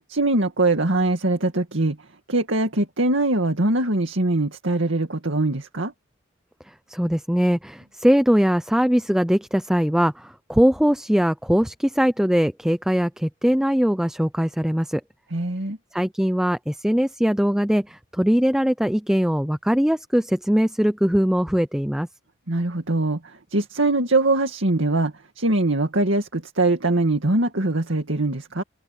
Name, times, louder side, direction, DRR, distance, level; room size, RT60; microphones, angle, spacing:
voice 1, 0.1-2.0 2.3-5.9 15.3-15.8 22.5-28.6, right 2 dB, 85° right, 2.2 m, -22 dB
voice 2, 6.7-15.0 15.9-22.1, equal, 5° right, 0.4 m, -21 dB
head